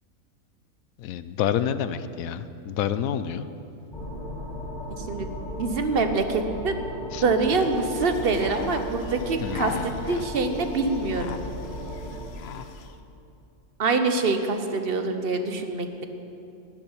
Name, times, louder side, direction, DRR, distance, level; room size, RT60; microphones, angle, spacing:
voice 1, 1.0-3.5 7.1-7.2 9.4-10.1, left 9 dB, 90° left, 13 dB, 1.0 m, -28 dB
sound 1, 3.9-12.3, equal, 35° left, 1.7 m, -36 dB
voice 2, 5.0-11.4 13.8-16.0, right 3 dB, 50° right, 7 dB, 1.0 m, -25 dB
sound 2, 7.4-13.0, left 7 dB, 60° left, 0.8 m, -40 dB
12.5 x 7.3 x 9.7 m, 2.9 s
omnidirectional pair, 1.4 m